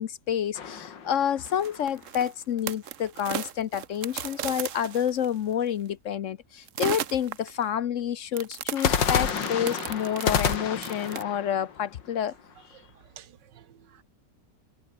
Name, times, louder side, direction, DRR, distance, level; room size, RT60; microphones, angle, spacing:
voice 1, 0.0-12.3, left 9 dB, 60° left, 0.8 m, -29 dB
sound 1, 0.5-2.0 8.8-12.7, left 7 dB, 90° left, 2.6 m, -29 dB
sound 2, 1.4-5.5 6.7-7.7 8.3-11.2, right 10 dB, 55° right, 1.1 m, -36 dB
voice 2, 12.7-14.0, right 10 dB, 75° right, 1.8 m, -52 dB
omnidirectional pair, 1.9 m